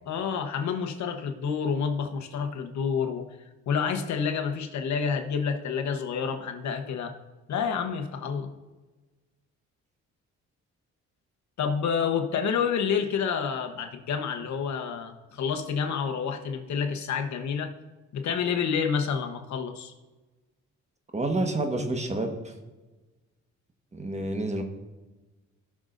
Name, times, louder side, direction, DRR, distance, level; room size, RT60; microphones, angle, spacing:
voice 1, 0.1-3.2 3.7-7.1 7.5-8.5 11.6-17.7 18.1-19.9, left 6 dB, 65° left, 5 dB, 1.1 m, -29 dB
voice 2, 21.1-22.5 23.9-24.6, right 2 dB, 20° right, 4 dB, 1.4 m, -29 dB
17.5 x 6.4 x 2.6 m, 1.2 s
cardioid pair, 90°, 30 cm